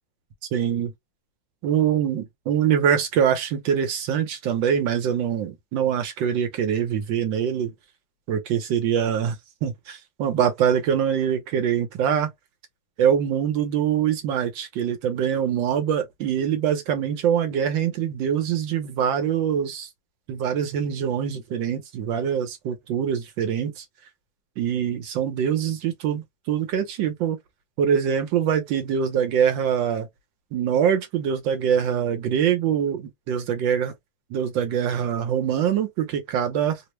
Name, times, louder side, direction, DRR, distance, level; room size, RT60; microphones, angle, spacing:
voice 1, 0.5-0.9 1.6-7.7 8.3-12.3 13.0-19.9 20.3-23.8 24.6-27.4 27.8-30.1 30.5-33.9 34.3-36.8, right 8 dB, 75° right, 1.4 m, -24 dB
3.5 x 2.0 x 3.0 m
omnidirectional pair, 2.1 m